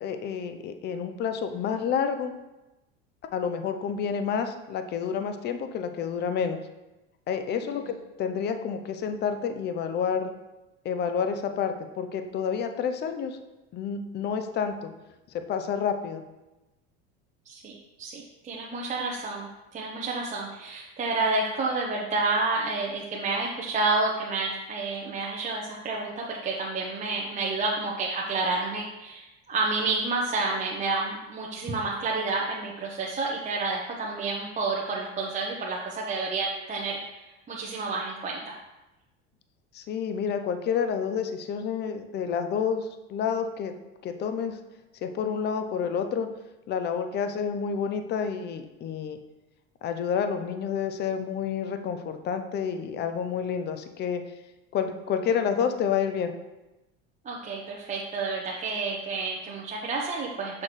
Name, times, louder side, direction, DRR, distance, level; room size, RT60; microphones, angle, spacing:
voice 1, 0.0-2.3 3.3-6.6 7.3-10.3 10.8-13.4 13.7-14.9 15.3-16.2 39.7-43.7 44.0-44.6 45.0-46.3 46.7-49.2 49.8-54.2 54.7-56.3, left 7 dB, 35° left, 8 dB, 0.6 m, -29 dB
voice 2, 17.5-37.0 37.5-38.5 57.2-60.6, right 3 dB, 25° right, -3 dB, 0.8 m, -30 dB
6.4 x 5.7 x 3.2 m, 1.0 s
supercardioid pair, 115°, 29 cm